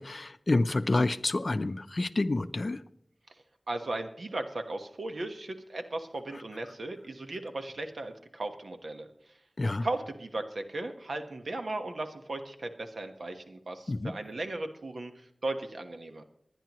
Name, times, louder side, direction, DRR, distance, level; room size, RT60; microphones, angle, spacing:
voice 1, 0.0-2.8 9.6-9.9 13.9-14.1, left 2 dB, 50° left, 13 dB, 0.5 m, -28 dB
voice 2, 3.7-9.1 9.8-16.2, right 2 dB, 85° right, 6 dB, 1.3 m, -36 dB
26.5 x 10.0 x 3.1 m, 0.70 s
wide cardioid pair, 75°, 0 cm